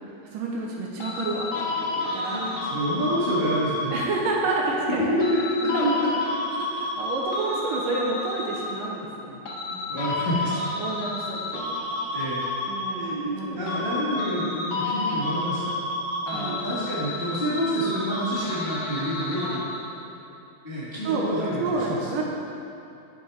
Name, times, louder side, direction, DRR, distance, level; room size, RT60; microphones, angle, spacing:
voice 1, 0.3-2.5 3.9-5.1 5.7-5.9 6.5-9.4 10.8-11.9 12.7-13.9 16.3-16.7 21.0-21.3 21.6-22.2, right 3 dB, 75° right, -2 dB, 2.3 m, -29 dB
sound 1, 1.0-4.4 5.2-9.0 9.4-13.4 13.7-20.0, left 2 dB, 85° left, 1.3 m, -31 dB
voice 2, 2.3-3.9 5.0-5.9 8.6-8.7 9.6-10.6 12.1-12.4 12.9-15.6 16.2-19.6 20.6-22.0, equal, 25° left, -11 dB, 1.3 m, -28 dB
11.5 x 7.1 x 3.4 m, 2.8 s
omnidirectional pair, 4.3 m